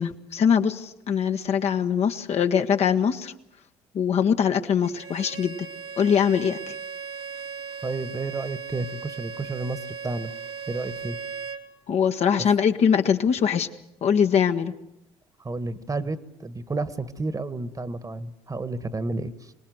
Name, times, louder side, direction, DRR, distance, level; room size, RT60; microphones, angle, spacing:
voice 1, 0.0-3.3 3.9-5.6 6.0-6.7 11.9-13.7 14.0-14.7, left 7 dB, 55° left, 6 dB, 1.4 m, -22 dB
Bowed string instrument, 4.8-11.7, right 6 dB, 90° right, 1.8 m, -37 dB
voice 2, 7.8-9.8 10.0-10.3 10.7-11.2 15.4-19.3, right 3 dB, 25° right, 14 dB, 1.6 m, -31 dB
26.0 x 19.0 x 7.9 m, 0.80 s
hypercardioid pair, 60°, 13 cm